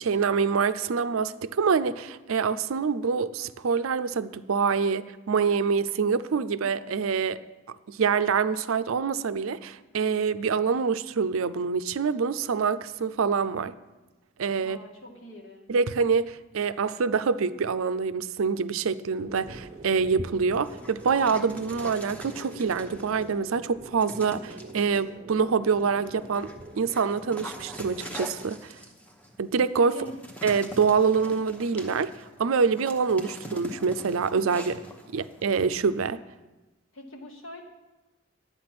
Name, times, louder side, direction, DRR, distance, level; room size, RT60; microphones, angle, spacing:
voice 1, 0.0-7.4 7.9-13.7 14.4-14.8 15.7-26.5 26.8-28.7 29.4-30.0 30.4-32.1 32.4-34.8 35.1-36.2, right 5 dB, 75° right, 0.5 m, -26 dB
voice 2, 14.6-15.7 29.9-30.2 36.9-37.6, left 1 dB, 60° left, 1.8 m, -43 dB
sound 1, 19.2-28.5, right 2 dB, 30° right, 0.6 m, -44 dB
Dog, 20.5-23.4 24.0-25.0 25.6-36.0, equal, 5° left, 0.8 m, -44 dB
10.5 x 8.9 x 5.9 m
head